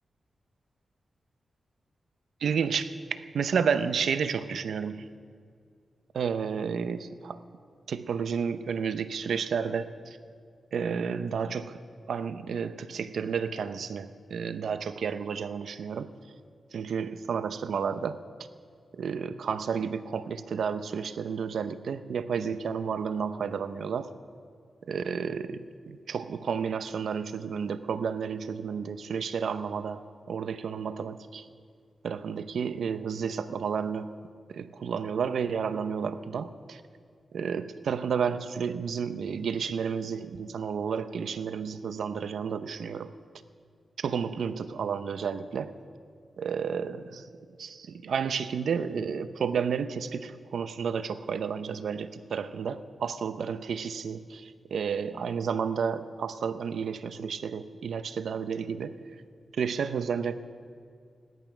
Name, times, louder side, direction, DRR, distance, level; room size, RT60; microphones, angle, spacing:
voice 1, 2.4-5.0 6.1-7.4 7.9-10.2 10.7-11.8 12.1-16.1 16.7-18.2 19.0-24.1 24.9-30.0 30.3-31.4 32.0-34.1 34.5-36.8 37.3-43.1 44.0-45.7 46.4-47.2 47.6-59.0 59.6-60.3, right 6 dB, 85° right, 12 dB, 0.6 m, -31 dB
16.5 x 12.5 x 6.0 m, 2.2 s
wide cardioid pair, 105°, 0 cm